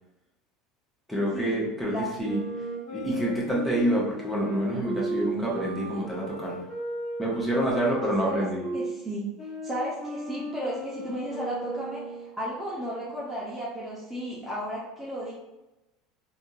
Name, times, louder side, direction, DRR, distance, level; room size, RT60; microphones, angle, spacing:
voice 1, 1.1-2.4 2.9-6.6 7.2-8.6, right 1 dB, 5° left, -5 dB, 1.3 m, -27 dB
sound 1, 2.2-8.9 9.4-12.3, right 1 dB, 45° left, 1.4 m, -36 dB
voice 2, 7.5-7.9 8.2-8.4 8.7-9.2 9.6-12.1 12.4-15.3, equal, 15° right, -7 dB, 1.0 m, -34 dB
3.4 x 2.8 x 2.4 m, 1.0 s
hypercardioid pair, 75°, 0 cm